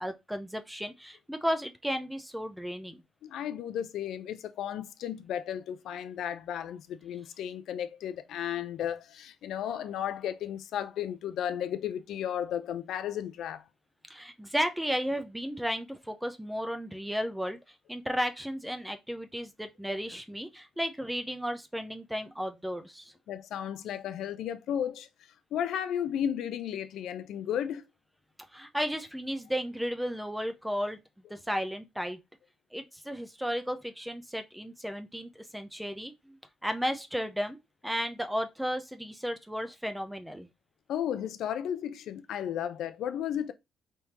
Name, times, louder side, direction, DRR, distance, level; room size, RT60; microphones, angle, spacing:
voice 1, 0.0-3.0 14.1-17.6 17.9-23.1 28.5-31.0 31.3-32.2 32.7-37.6 37.8-40.5, equal, 5° right, 0.8 m, -34 dB
voice 2, 3.2-13.6 23.3-25.1 25.5-27.8 40.9-43.5, left 9 dB, 80° left, 0.6 m, -34 dB
4.2 x 3.5 x 3.0 m
cardioid pair, 90°, 0 cm